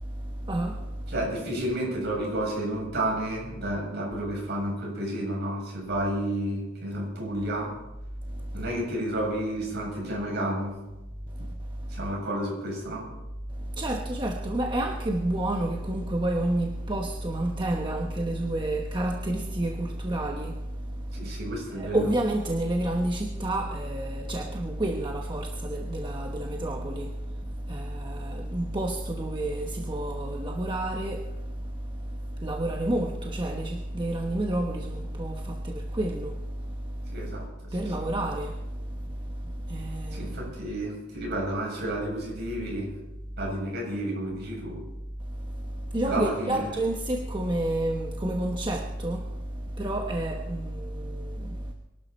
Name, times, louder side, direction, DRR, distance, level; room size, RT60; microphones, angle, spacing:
voice 1, 0.0-1.1 8.3-8.6 11.3-11.5 11.8-12.1 13.5-21.3 21.7-37.4 37.7-40.4 45.3-51.7, right 1 dB, 25° right, 1.1 m, -30 dB
voice 2, 1.1-7.7 8.5-10.8 11.4-11.5 11.9-13.1 21.1-22.1 37.1-38.1 40.1-42.9 43.4-44.8 46.1-46.6, right 1 dB, 55° right, 7.7 m, -31 dB
24.0 x 12.0 x 4.4 m
head